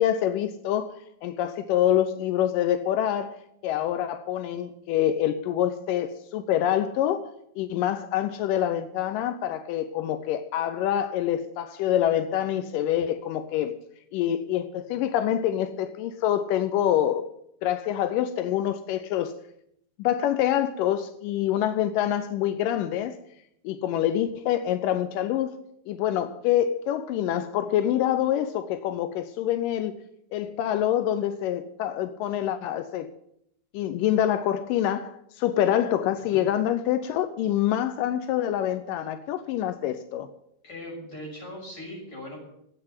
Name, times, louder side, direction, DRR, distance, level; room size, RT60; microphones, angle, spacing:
voice 1, 0.0-3.4 3.6-7.3 7.6-13.8 14.1-17.3 17.6-19.3 20.0-23.2 23.6-25.5 25.9-29.9 30.3-33.1 33.7-40.3, left 11 dB, 80° left, 10 dB, 2.0 m, -26 dB
voice 2, 40.6-42.4, left 1 dB, 25° left, -2 dB, 7.0 m, -39 dB
13.0 x 8.8 x 9.6 m, 0.74 s
omnidirectional pair, 4.7 m